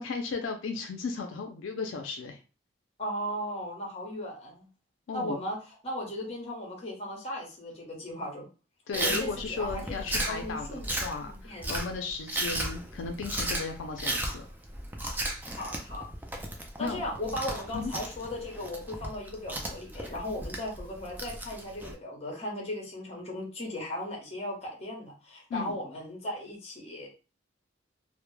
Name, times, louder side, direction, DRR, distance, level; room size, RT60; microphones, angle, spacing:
voice 1, 0.0-2.4 5.1-5.4 8.9-14.5 16.8-17.0 17.7-17.9 25.5-25.8, left 4 dB, 90° left, 5 dB, 0.4 m, -35 dB
voice 2, 3.0-4.7 5.1-5.6 5.8-8.5 8.9-10.9 11.2-11.7 15.5-16.1 16.8-27.1, left 1 dB, 35° left, 0 dB, 0.8 m, -37 dB
Chewing mastication, 8.9-21.9, right 1 dB, 10° right, 0.3 m, -35 dB
2.1 x 2.0 x 3.0 m, 0.33 s
head